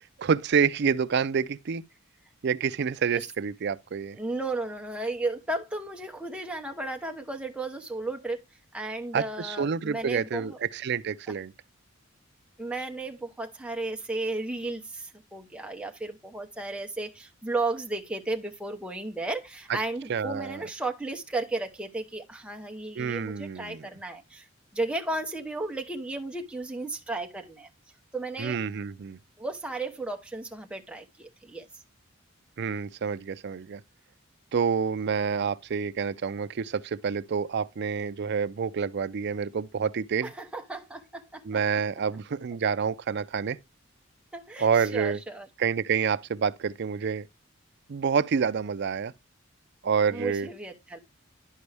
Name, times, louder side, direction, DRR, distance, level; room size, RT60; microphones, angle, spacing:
voice 1, 0.2-1.8 2.4-4.2 9.1-11.5 20.1-20.6 23.0-23.9 28.4-29.2 32.6-33.8 34.5-40.3 41.4-43.6 44.6-45.2 45.6-47.3 47.9-49.1 49.8-50.5, right 6 dB, 55° right, 0.4 m, -28 dB
voice 2, 4.1-8.4 8.7-10.6 12.6-24.5 24.7-27.7 28.1-28.6 29.4-31.7 40.2-41.4 44.3-45.5 50.1-51.0, right 2 dB, 5° right, 0.9 m, -34 dB
11.0 x 5.2 x 3.3 m
head